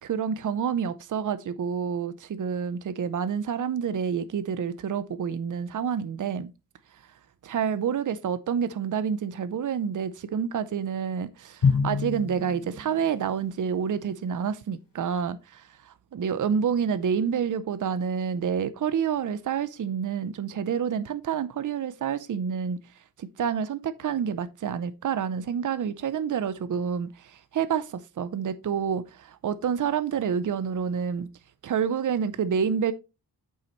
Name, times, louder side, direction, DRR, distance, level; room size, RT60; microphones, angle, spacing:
voice 1, 0.0-6.5 7.4-22.8 23.2-31.3 31.6-32.9, right 7 dB, 50° right, 0.6 m, -28 dB
Drum, 11.6-13.4, left 5 dB, 75° left, 3.7 m, -26 dB
8.5 x 6.9 x 3.1 m
wide cardioid pair, 150°, 40 cm